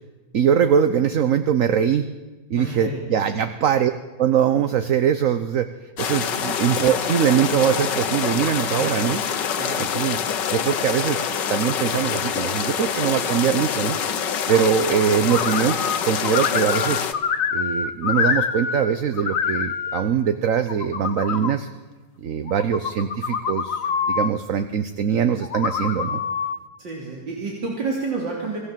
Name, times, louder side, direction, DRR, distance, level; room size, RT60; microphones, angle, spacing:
voice 1, 0.3-2.1 2.5-3.9 4.2-5.7 6.0-9.2 9.9-10.2 10.5-11.2 11.5-14.0 14.5-15.8 16.0-17.1 17.5-21.7 22.2-26.2, right 8 dB, 55° right, 10 dB, 1.1 m, -22 dB
voice 2, 2.5-3.0 3.3-3.5 6.3-6.5 9.5-9.9 15.2-15.3 26.8-28.6, right 3 dB, 80° right, -2 dB, 3.8 m, -30 dB
sound 1, 6.0-17.1, left 7 dB, 75° left, 1.8 m, -26 dB
sound 2, 15.3-16.0 16.2-18.9 19.1-20.0 20.5-21.5 22.5-24.3 25.4-26.6, left 6 dB, 50° left, 1.4 m, -25 dB
26.5 x 16.5 x 7.6 m, 1.3 s
omnidirectional pair, 1.9 m